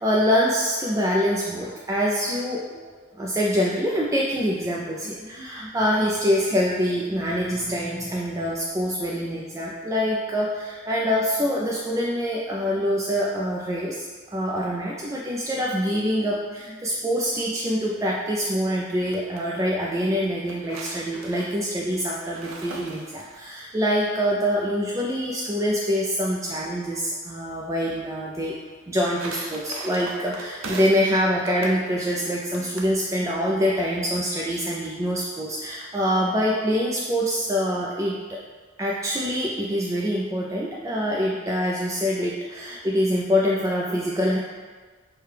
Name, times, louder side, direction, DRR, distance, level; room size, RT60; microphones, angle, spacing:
voice 1, 0.0-2.8 3.2-28.5 28.9-38.4 38.8-44.4, equal, 15° right, -4 dB, 0.3 m, -25 dB
sound 1, 18.9-19.4 20.2-23.5 28.7-31.1 31.5-31.8 32.5-33.0, right 2 dB, 90° right, 0.6 m, -39 dB
6.5 x 2.2 x 3.2 m, 1.4 s
head